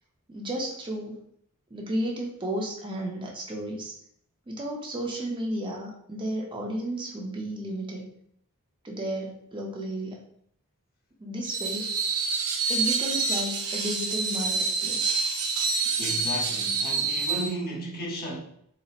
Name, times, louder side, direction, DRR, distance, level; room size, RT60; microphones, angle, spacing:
voice 1, 0.3-1.2 1.7-3.9 4.5-8.0 8.8-10.2 11.2-11.9 12.7-15.2 15.7-15.8, right 1 dB, 20° right, 0.6 m, -33 dB
Screech, 11.5-17.5, right 4 dB, 85° right, 0.6 m, -27 dB
voice 2, 16.0-18.4, equal, 45° left, 0.7 m, -34 dB
4.1 x 2.0 x 2.4 m
head